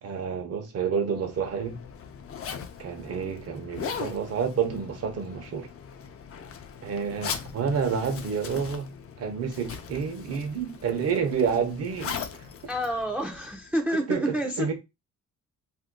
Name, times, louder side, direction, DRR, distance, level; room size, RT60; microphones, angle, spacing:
voice 1, 0.0-1.8 2.8-5.7 6.8-12.2 14.1-14.7, right 6 dB, 55° right, 0.9 m, -29 dB
Zipper (clothing), 1.1-13.7, left 7 dB, 50° left, 0.6 m, -40 dB
voice 2, 12.7-14.7, right 1 dB, 5° right, 0.5 m, -28 dB
2.7 x 2.2 x 3.6 m
cardioid pair, 90°, 30 cm